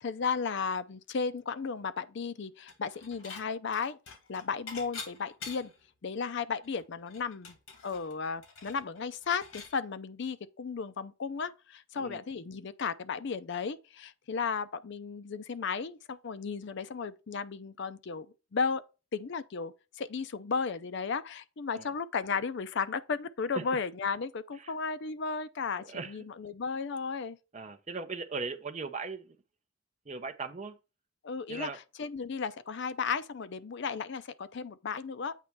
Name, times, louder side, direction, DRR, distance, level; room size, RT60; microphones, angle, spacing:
voice 1, 0.0-5.7 6.0-7.6 7.8-18.8 19.1-27.4 31.2-31.7 32.0-35.3, left 5 dB, 55° left, 0.5 m, -34 dB
Dishes pots and pans / Chink clink, 2.7-3.4 3.7-5.8 6.3-6.4 6.6-9.7, left 4 dB, 75° left, 2.2 m, -46 dB
voice 2, 25.8-26.2 27.5-29.4 30.1-30.8 31.5-31.8, right 4 dB, 35° right, 0.6 m, -38 dB
8.2 x 3.1 x 5.9 m
head